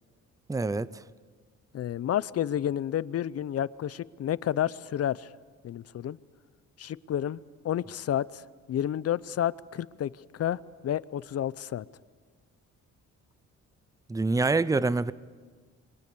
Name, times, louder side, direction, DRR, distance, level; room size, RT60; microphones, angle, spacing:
voice 1, 0.5-1.0 14.1-15.1, right 3 dB, 10° right, 18 dB, 0.6 m, -26 dB
voice 2, 1.7-5.3 5.6-6.2 6.8-8.4 8.7-11.8, left 10 dB, 55° left, 19 dB, 0.7 m, -30 dB
27.5 x 23.0 x 6.9 m, 1.5 s
cardioid pair, 90°, 30 cm